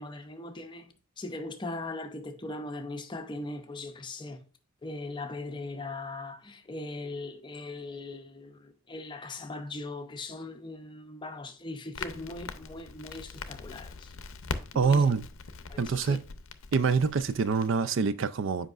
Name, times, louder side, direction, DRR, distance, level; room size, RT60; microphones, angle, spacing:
voice 1, 0.0-4.4 4.8-14.1 14.7-15.1 15.7-16.2, left 2 dB, 20° left, 0.6 m, -40 dB
Crackle, 11.9-17.7, left 4 dB, 70° left, 0.6 m, -41 dB
voice 2, 14.7-15.3 15.8-16.2 16.7-18.7, right 5 dB, 60° right, 0.4 m, -25 dB
7.7 x 5.1 x 2.4 m
head